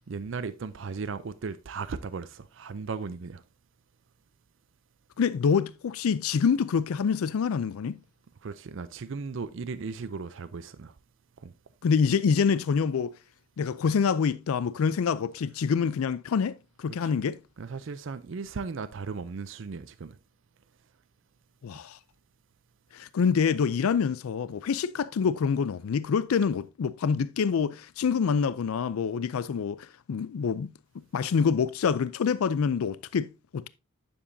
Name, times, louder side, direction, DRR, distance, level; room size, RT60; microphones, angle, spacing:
voice 1, 0.1-3.4 8.4-11.0 11.4-11.5 17.0-17.1 17.6-20.2, right 4 dB, 60° right, 0.5 m, -36 dB
voice 2, 5.2-8.0 11.8-13.1 13.6-17.4 21.6-22.0 22.9-33.7, left 6 dB, 80° left, 0.4 m, -26 dB
10.0 x 7.1 x 2.6 m
head